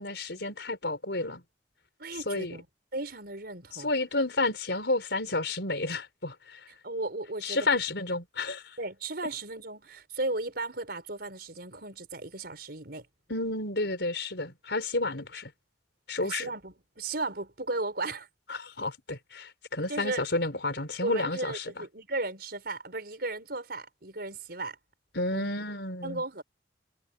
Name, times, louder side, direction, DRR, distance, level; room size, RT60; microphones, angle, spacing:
voice 1, 0.0-1.4 2.3-2.6 3.7-6.6 7.4-8.8 13.3-15.5 16.1-16.5 18.5-21.7 25.1-26.2, left 2 dB, 70° left, 5.0 m, -31 dB
voice 2, 2.0-2.7 2.9-3.9 6.8-7.6 8.8-13.1 16.2-18.3 19.9-20.2 21.0-24.8 25.3-25.5 26.0-26.4, right 2 dB, 60° right, 6.0 m, -35 dB
head